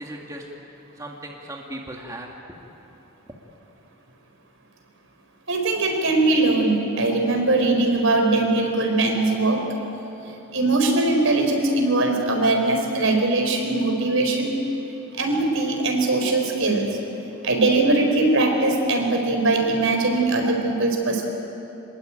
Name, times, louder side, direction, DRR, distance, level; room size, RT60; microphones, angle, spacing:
voice 1, 0.0-2.3, right 1 dB, 15° right, -1 dB, 2.0 m, -37 dB
voice 2, 5.5-9.6 10.5-14.5 15.1-16.9 17.4-21.3, right 2 dB, 70° right, 3 dB, 4.7 m, -21 dB
26.5 x 21.0 x 9.1 m, 3.0 s
head